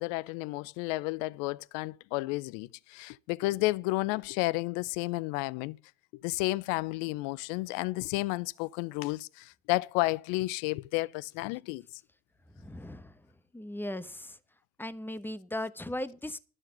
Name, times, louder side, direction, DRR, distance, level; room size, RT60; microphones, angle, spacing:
voice 1, 0.0-5.8 6.2-11.8, left 21 dB, 65° left, 0.6 m, -32 dB
voice 2, 12.6-13.1 13.5-14.4 14.8-16.4, left 1 dB, 5° left, 1.1 m, -37 dB
12.0 x 5.9 x 8.1 m
hypercardioid pair, 80°, 35 cm